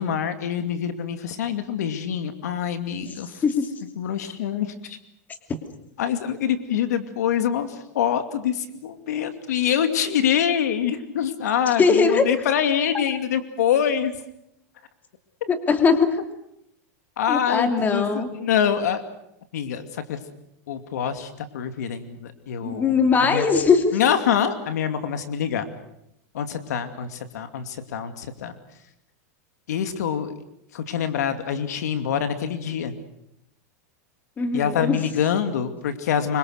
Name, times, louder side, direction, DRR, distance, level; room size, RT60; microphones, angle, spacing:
voice 1, 0.0-3.4 4.0-5.0 6.0-14.1 15.4-15.5 17.2-19.0 19.5-20.2 20.7-22.9 23.2-23.4 23.9-25.7 26.3-28.5 29.7-30.3 30.7-32.9 34.5-36.4, left 8 dB, 80° left, 9 dB, 2.6 m, -25 dB
voice 2, 11.8-12.2 15.5-16.2 17.3-18.3 22.6-24.0 34.4-35.0, left 5 dB, 20° left, 6 dB, 2.9 m, -20 dB
26.5 x 25.0 x 6.6 m, 0.81 s
supercardioid pair, 140°, 9 cm